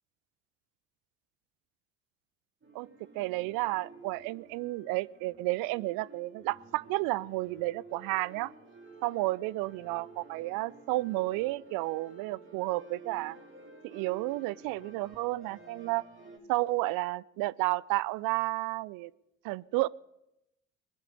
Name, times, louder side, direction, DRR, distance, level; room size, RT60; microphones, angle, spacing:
sound 1, 2.6-16.4, right 3 dB, 30° right, 4.2 m, -52 dB
voice 1, 3.1-8.5 9.0-13.4 13.8-16.0 16.5-19.1 19.4-19.9, right 20 dB, 60° right, 23 dB, 0.5 m, -32 dB
19.5 x 10.5 x 6.9 m, 0.87 s
hypercardioid pair, 55°, 39 cm